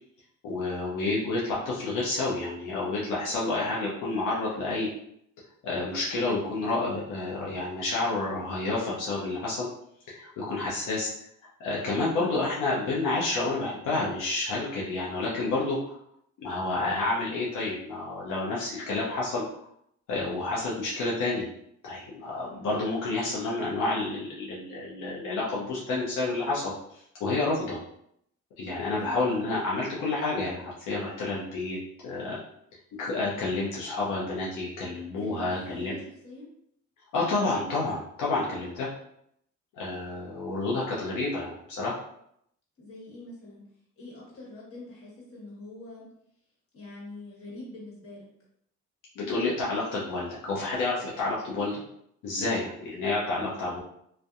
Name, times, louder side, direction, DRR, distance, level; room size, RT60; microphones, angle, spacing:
voice 1, 0.4-4.9 5.6-9.7 10.1-11.1 11.6-15.9 16.4-19.4 20.1-21.5 21.8-27.8 28.6-31.8 32.0-32.4 33.0-35.9 37.1-38.9 39.7-41.9 49.2-51.8 52.2-53.8, left 2 dB, 85° left, -6 dB, 0.6 m, -29 dB
voice 2, 35.2-36.5 42.8-43.6 44.0-46.1 46.7-48.3 52.3-52.7 53.4-53.6, left 2 dB, 50° left, -4 dB, 1.3 m, -44 dB
2.6 x 2.1 x 2.4 m, 0.73 s
cardioid pair, 90°, 30 cm